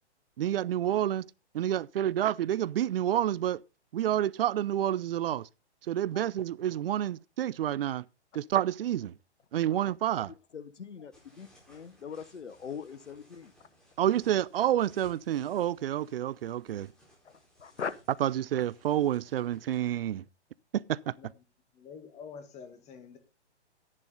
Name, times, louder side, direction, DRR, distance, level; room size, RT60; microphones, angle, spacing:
voice 1, 0.4-1.3 1.5-3.6 3.9-5.5 5.9-8.0 8.3-9.1 9.5-10.3 14.0-16.9 18.2-20.2 20.7-21.1, right 11 dB, 55° right, 0.6 m, -29 dB
voice 2, 10.5-13.5 17.2-17.9, left 6 dB, 85° left, 1.1 m, -41 dB
sound 1, 11.1-19.8, equal, ahead, 4.7 m, -62 dB
voice 3, 21.7-23.2, left 6 dB, 20° left, 1.8 m, -47 dB
10.5 x 10.5 x 3.9 m
hypercardioid pair, 140°, 35 cm